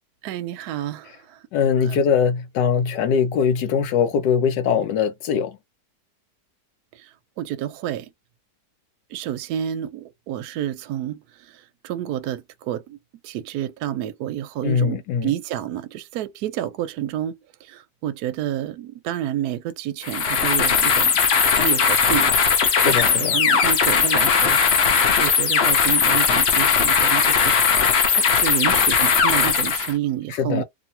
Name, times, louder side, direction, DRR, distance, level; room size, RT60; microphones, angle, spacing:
voice 1, 0.2-1.4 1.7-2.0 6.9-8.1 9.1-13.0 13.2-21.2 21.6-22.3 22.8-24.9 25.2-27.5 28.1-30.6, right 11 dB, 70° right, 1.0 m, -29 dB
voice 2, 1.5-5.6 14.6-15.3 22.8-23.3 30.3-30.6, left 7 dB, 80° left, 1.3 m, -21 dB
sound 1, 20.0-29.9, left 6 dB, 55° left, 0.7 m, -18 dB
2.9 x 2.5 x 2.7 m
omnidirectional pair, 1.8 m